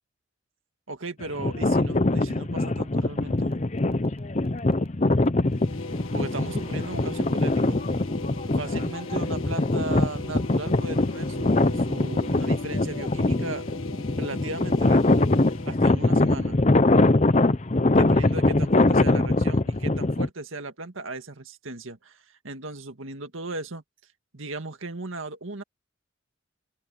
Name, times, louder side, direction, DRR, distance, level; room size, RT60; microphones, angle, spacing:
voice 1, 0.9-3.5 6.1-7.8 8.6-13.6 14.2-15.3 15.7-16.6 17.9-23.8 24.3-25.6, right 2 dB, 75° right, 2.0 m, -36 dB
sound 1, 1.2-20.3, left 2 dB, 35° left, 0.7 m, -23 dB
sound 2, 3.4-8.6, equal, 30° right, 7.6 m, -50 dB
sound 3, 5.5-15.9, left 3 dB, 85° left, 1.5 m, -38 dB
open air
head